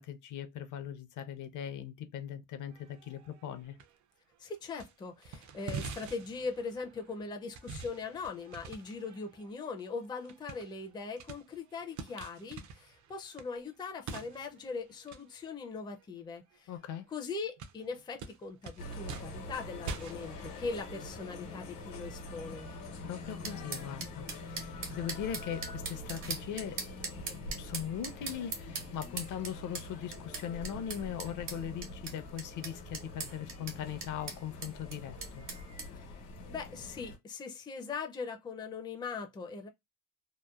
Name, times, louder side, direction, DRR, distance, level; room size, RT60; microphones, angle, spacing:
voice 1, 0.0-3.8 16.7-17.1 23.0-26.8 27.6-35.5, left 9 dB, 65° left, 0.6 m, -40 dB
sound 1, 2.7-4.0 4.3-4.9 5.2-16.8 17.1-17.2 17.6-21.0, right 5 dB, 60° right, 0.6 m, -47 dB
voice 2, 4.4-16.7 17.1-22.7 36.0-36.1 36.5-39.7, left 4 dB, 15° left, 0.4 m, -40 dB
sound 2, 18.8-37.2, left 2 dB, 80° left, 1.0 m, -45 dB
sound 3, 23.4-35.9, right 5 dB, 75° right, 1.2 m, -41 dB
2.9 x 2.1 x 2.3 m
cardioid pair, 135°, 33 cm